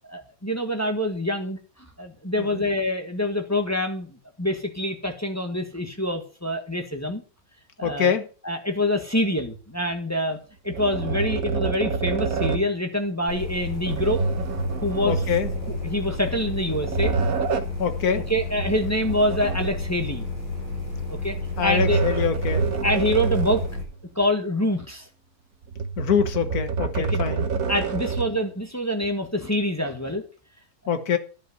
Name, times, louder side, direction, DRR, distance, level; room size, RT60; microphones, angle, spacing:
voice 1, 0.1-1.6 2.0-4.1 4.4-7.2 7.8-8.1 8.4-10.4 10.6-14.2 14.8-15.2 15.8-17.1 18.3-20.2 21.1-22.3 22.8-23.6 24.1-25.1 26.9-27.2 27.7-30.2, left 1 dB, 10° left, 4 dB, 1.2 m, -26 dB
voice 2, 7.8-8.3 15.0-15.5 17.8-18.3 21.6-22.7 26.0-27.5 30.9-31.2, left 7 dB, 50° left, 10 dB, 1.5 m, -24 dB
sound 1, 10.7-12.7 13.8-15.9 16.5-17.8 18.6-20.1 21.3-23.8 24.2-24.3 25.6-28.4, right 5 dB, 55° right, 1.2 m, -27 dB
sound 2, 13.3-23.8, left 3 dB, 75° left, 5.5 m, -32 dB
11.0 x 5.3 x 7.9 m, 0.37 s
omnidirectional pair, 2.3 m